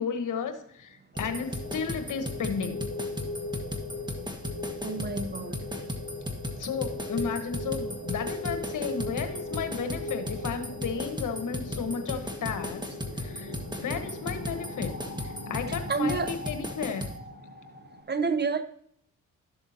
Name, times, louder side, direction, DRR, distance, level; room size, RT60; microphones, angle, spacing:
voice 1, 0.0-2.9 6.6-12.9 13.2-13.5 13.8-17.1, left 6 dB, 70° left, 8 dB, 1.2 m, -33 dB
sound 1, 1.1-18.0, left 2 dB, 45° left, 4.3 m, -39 dB
sound 2, 1.2-17.2, left 1 dB, 15° right, 1.6 m, -36 dB
voice 2, 4.8-5.5 15.7-16.3 18.1-18.6, right 4 dB, 30° right, 11 dB, 0.8 m, -29 dB
12.5 x 7.1 x 2.8 m, 0.70 s
supercardioid pair, 55°, 32 cm